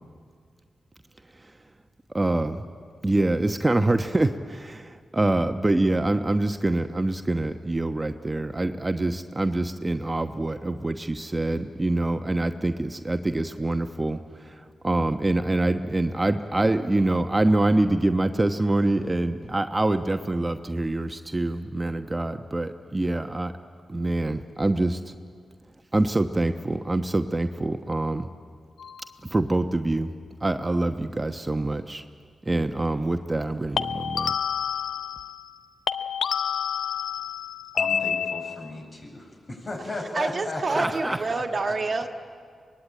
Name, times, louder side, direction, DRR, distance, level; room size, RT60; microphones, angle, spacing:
voice 1, 2.1-2.7 3.0-23.5 23.9-25.1 25.9-28.3 29.2-30.1 30.4-32.0 32.4-34.3 40.7-41.3, right 2 dB, 25° right, 7 dB, 1.1 m, -25 dB
sound 1, 28.8-29.1 33.8-35.6 35.9-38.8, left 8 dB, 75° left, 0.6 m, -29 dB
voice 2, 37.7-41.8, left 2 dB, 45° left, 1 dB, 7.6 m, -35 dB
voice 3, 40.1-42.1, right 3 dB, 50° right, 5 dB, 1.5 m, -27 dB
24.0 x 20.5 x 9.0 m, 2.1 s
supercardioid pair, 40°, 0 cm